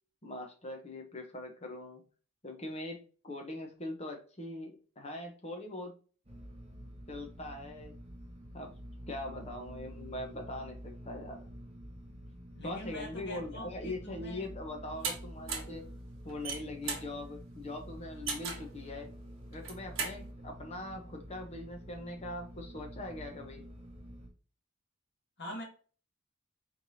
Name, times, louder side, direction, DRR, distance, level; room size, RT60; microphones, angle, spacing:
voice 1, 0.2-2.0 2.4-6.0 7.1-8.0 8.5-8.8 9.1-11.4 12.6-15.8 16.2-19.1 19.5-23.7, left 1 dB, 30° left, 0.9 m, -42 dB
sound 1, 6.2-24.3, equal, 30° right, 1.0 m, -48 dB
voice 2, 12.5-14.5 25.4-25.6, left 1 dB, 55° left, 1.9 m, -43 dB
sound 2, 15.0-15.2 15.5-15.8 16.3-17.1 18.3-18.7 19.5-20.2, right 5 dB, 65° right, 1.3 m, -36 dB
4.4 x 3.3 x 2.7 m
head